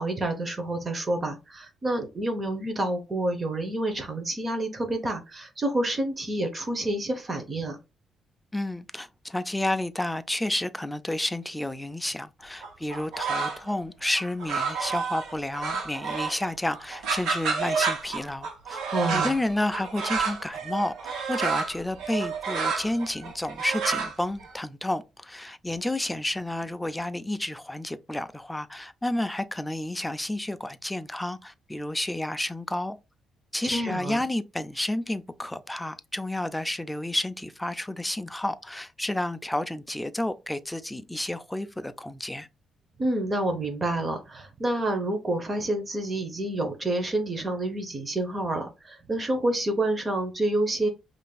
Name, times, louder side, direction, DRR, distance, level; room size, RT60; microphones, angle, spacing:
voice 1, 0.0-7.8 18.9-19.4 33.6-34.2 43.0-50.9, right 1 dB, 30° right, 0.8 m, -28 dB
voice 2, 8.5-18.8 19.1-33.0 33.5-42.5, left 1 dB, 5° left, 0.4 m, -31 dB
sound 1, 12.6-13.7 14.1-16.5 16.7-24.5, right 5 dB, 90° right, 1.1 m, -30 dB
5.1 x 2.5 x 2.3 m
cardioid pair, 110°, 0 cm